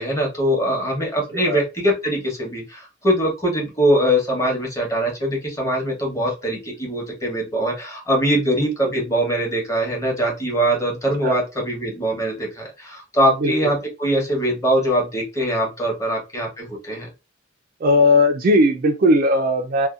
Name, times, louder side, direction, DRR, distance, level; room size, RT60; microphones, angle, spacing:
voice 1, 0.0-17.1, equal, 15° left, 0.9 m, -22 dB
voice 2, 13.4-13.7 17.8-19.9, left 1 dB, 45° right, 0.3 m, -18 dB
2.7 x 2.2 x 2.3 m
head